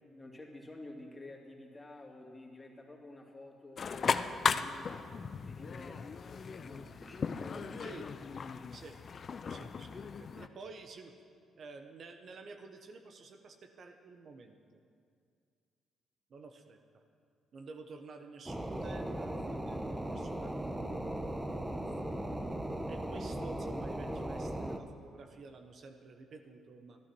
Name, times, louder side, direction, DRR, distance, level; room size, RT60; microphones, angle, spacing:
voice 1, 0.0-5.0 5.5-7.9, left 2 dB, 20° left, -1 dB, 2.8 m, -51 dB
sound 1, 3.8-10.5, left 5 dB, 50° left, 0.6 m, -37 dB
voice 2, 9.5-11.1 11.5-14.8 16.3-17.0 17.5-22.1 22.9-27.0, right 3 dB, 55° right, 5 dB, 1.1 m, -51 dB
sound 2, 18.5-24.8, right 1 dB, 15° right, 1.1 m, -38 dB
13.0 x 11.0 x 6.2 m, 2.3 s
supercardioid pair, 60°, 0 cm